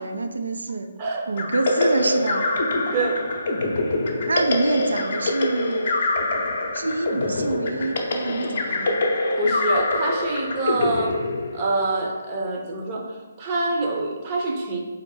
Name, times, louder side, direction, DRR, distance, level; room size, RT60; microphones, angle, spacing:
voice 1, 0.0-0.9 1.3-2.5 4.3-6.0 6.7-9.0, right 3 dB, 65° right, 6 dB, 0.4 m, -26 dB
sound 1, 1.4-11.9, left 2 dB, 45° left, 0.6 m, -25 dB
voice 2, 2.9-3.3 9.4-11.2 11.5-14.8, right 2 dB, 30° right, 0 dB, 0.7 m, -26 dB
4.1 x 2.5 x 4.8 m, 1.3 s
figure-of-eight pair, 140°, 0 cm